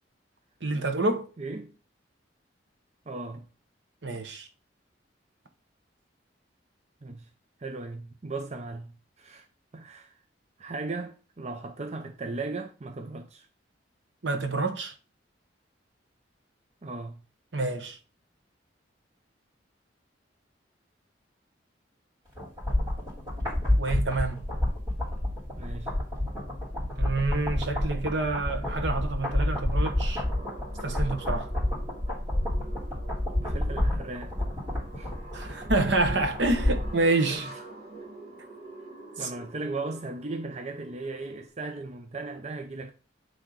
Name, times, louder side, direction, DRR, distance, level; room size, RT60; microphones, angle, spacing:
voice 1, 0.6-1.3 4.0-4.5 14.2-14.9 17.5-18.0 23.8-24.4 27.0-30.2 30.8-31.5 35.3-37.5 39.2-39.3, right 2 dB, 70° right, 1.1 m, -28 dB
voice 2, 1.4-1.7 3.1-3.5 7.0-7.3 7.6-9.5 9.7-10.2 10.6-13.5 16.8-17.2 25.6-25.9 33.4-34.4 35.0-35.1 35.5-35.6 37.3-37.6 39.2-42.9, right 3 dB, 35° right, 0.6 m, -37 dB
sound 1, 22.4-37.0 37.3-37.4, left 1 dB, 20° right, 3.0 m, -29 dB
sound 2, 28.4-41.5, right 2 dB, 55° right, 1.8 m, -47 dB
8.9 x 3.5 x 3.9 m
head